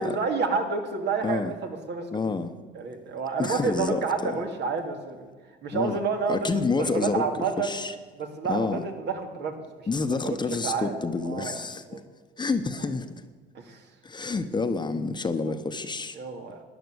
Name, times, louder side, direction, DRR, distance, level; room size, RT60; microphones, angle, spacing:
voice 1, 0.0-2.4 2.7-5.3 5.6-7.8 8.1-9.9 10.2-10.4 10.6-11.0 11.2-11.6 11.9-12.0 13.5-13.9 15.4-15.5 16.1-16.6, right 5 dB, 65° right, 5 dB, 2.3 m, -29 dB
voice 2, 1.2-1.5 2.1-2.5 3.4-4.5 5.7-6.0 6.3-7.3 7.6-7.9 8.5-8.8 9.9-11.8 12.4-13.1 14.0-16.2, left 4 dB, 25° left, 9 dB, 1.0 m, -28 dB
12.5 x 10.0 x 8.0 m, 1.4 s
cardioid pair, 95°, 19 cm